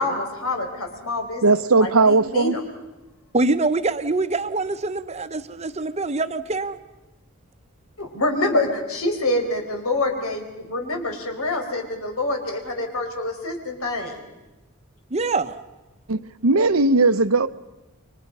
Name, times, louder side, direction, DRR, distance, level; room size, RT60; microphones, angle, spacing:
voice 1, 0.0-1.4 1.8-2.6 8.0-14.2, left 2 dB, 90° left, 4.6 m, -26 dB
voice 2, 1.4-2.5 16.1-17.5, right 3 dB, 80° right, 0.9 m, -18 dB
voice 3, 3.3-6.8 15.1-15.5, right 3 dB, 30° right, 0.9 m, -24 dB
29.5 x 24.0 x 5.5 m
head